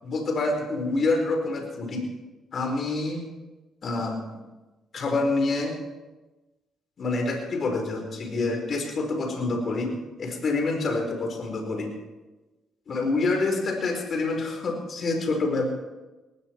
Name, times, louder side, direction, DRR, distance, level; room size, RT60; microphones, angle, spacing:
voice 1, 0.0-2.0 2.5-3.2 3.8-4.2 4.9-5.8 7.0-11.9 12.9-15.6, left 3 dB, 50° left, 3 dB, 4.3 m, -27 dB
19.5 x 15.5 x 4.6 m, 1.1 s
cardioid pair, 90°, 0 cm